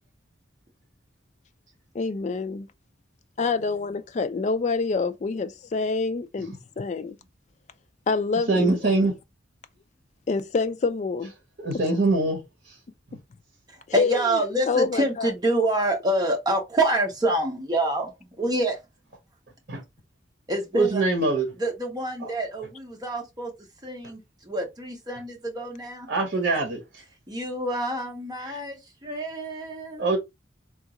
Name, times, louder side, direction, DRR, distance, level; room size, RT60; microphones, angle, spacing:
voice 1, 1.9-2.7 3.4-7.2 8.1-9.0 10.3-11.3 14.0-14.4 14.7-15.3, left 4 dB, 40° left, 0.3 m, -26 dB
voice 2, 8.5-9.1 11.6-12.8 13.1-13.2 19.7-19.8 20.7-21.5 22.2-22.3 26.1-27.0 28.4-28.6 30.0-30.2, right 2 dB, 50° right, 1.0 m, -24 dB
voice 3, 13.7-18.8 20.5-21.0 21.6-23.5 23.8-26.1 27.3-30.1, right 1 dB, 20° right, 0.9 m, -27 dB
3.6 x 2.4 x 2.9 m
head